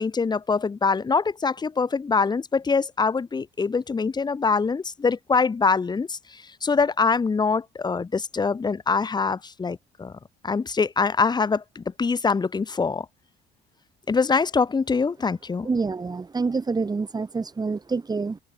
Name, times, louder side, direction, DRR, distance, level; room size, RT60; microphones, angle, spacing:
voice 1, 0.0-10.1 10.4-13.1 14.1-15.7, left 4 dB, 25° left, 2.1 m, -24 dB
voice 2, 15.6-18.4, right 4 dB, 25° right, 4.7 m, -27 dB
open air
cardioid pair, 110°, 17 cm